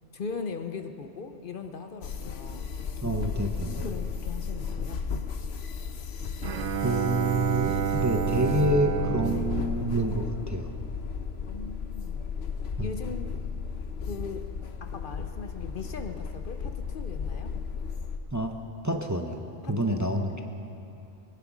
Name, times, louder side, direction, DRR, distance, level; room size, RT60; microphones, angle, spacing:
voice 1, 0.1-2.7 3.8-5.1 9.3-9.5 11.5-12.2 12.8-13.4 14.1-14.5 14.8-17.6 19.6-20.0, left 4 dB, 55° left, 7 dB, 0.8 m, -39 dB
sound 1, 2.0-18.2, left 6 dB, 75° left, 1.1 m, -34 dB
voice 2, 3.0-3.9 6.8-10.7 12.8-12.9 18.3-18.5 18.8-20.4, right 1 dB, 20° right, 3 dB, 0.8 m, -28 dB
Bowed string instrument, 6.4-10.8, right 9 dB, 55° right, 0.6 m, -30 dB
22.5 x 10.5 x 6.1 m, 2.8 s
omnidirectional pair, 1.1 m